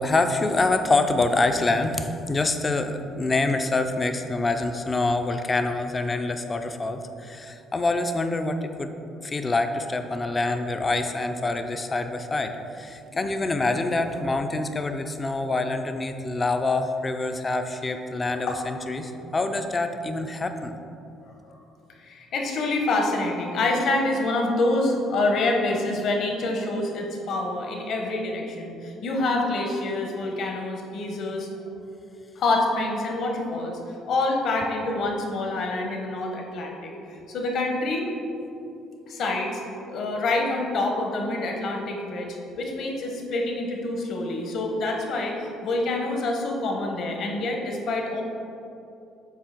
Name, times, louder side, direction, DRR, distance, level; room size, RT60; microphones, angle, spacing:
voice 1, 0.0-8.9 9.2-20.7, left 2 dB, 20° left, 7 dB, 0.4 m, -26 dB
voice 2, 22.0-31.5 32.4-33.8 34.1-36.9 37.3-38.1 39.1-39.6 39.9-48.2, left 2 dB, 50° left, 1 dB, 1.0 m, -26 dB
8.1 x 2.8 x 5.8 m, 2.7 s
cardioid pair, 160°, 0 cm